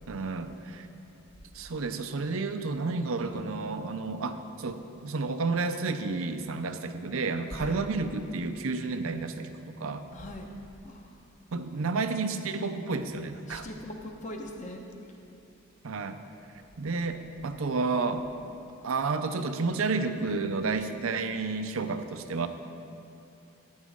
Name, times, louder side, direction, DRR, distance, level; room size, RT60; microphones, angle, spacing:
voice 1, 0.1-0.9 1.5-10.1 11.5-13.7 15.8-16.2 16.8-18.3 18.8-22.5, right 3 dB, 75° right, 9 dB, 0.6 m, -31 dB
voice 2, 10.1-10.5 10.8-11.1 13.5-14.8, left 1 dB, 35° left, 2 dB, 0.9 m, -40 dB
12.5 x 9.6 x 3.6 m, 2.7 s
head